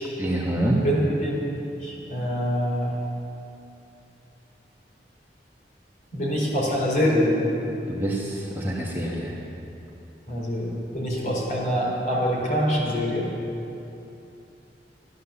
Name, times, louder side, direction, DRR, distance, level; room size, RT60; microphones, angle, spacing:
voice 1, 0.2-0.8 7.9-9.3, right 1 dB, 10° right, -4 dB, 1.5 m, -26 dB
voice 2, 0.8-1.3 1.8-2.9 6.1-7.3 10.3-13.3, equal, 45° left, -4 dB, 4.1 m, -25 dB
13.5 x 11.5 x 7.0 m, 2.8 s
head